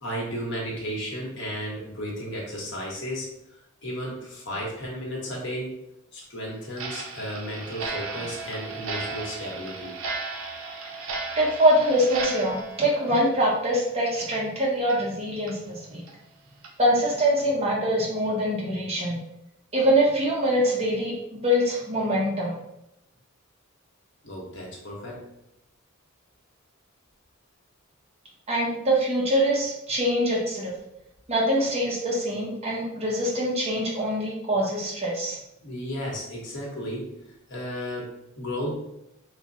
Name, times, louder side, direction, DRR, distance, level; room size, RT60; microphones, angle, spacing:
voice 1, 0.0-3.3 3.8-5.8 6.1-10.0 24.2-25.3 35.6-37.1 37.5-38.7, equal, 60° left, -3 dB, 1.0 m, -34 dB
Clock, 6.7-14.0 14.3-14.4 14.9-15.0 15.5-15.6 16.1-16.2 16.6-16.7 17.2-17.4, right 4 dB, 70° right, 0.5 m, -35 dB
voice 2, 11.4-16.0 16.8-19.2 19.7-22.6 28.5-30.7 31.3-35.4, equal, 30° right, -4 dB, 0.9 m, -24 dB
3.3 x 2.1 x 3.8 m, 0.83 s
head